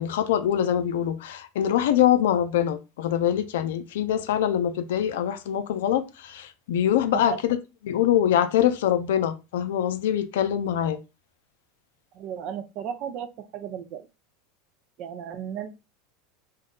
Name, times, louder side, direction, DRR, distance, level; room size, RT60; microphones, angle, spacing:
voice 1, 0.0-7.6 7.8-11.0, left 10 dB, 75° left, 0.4 m, -24 dB
voice 2, 12.2-13.3 13.5-14.0 15.0-15.7, right 8 dB, 55° right, 0.5 m, -34 dB
2.6 x 2.1 x 3.8 m
hypercardioid pair, 95°, 0 cm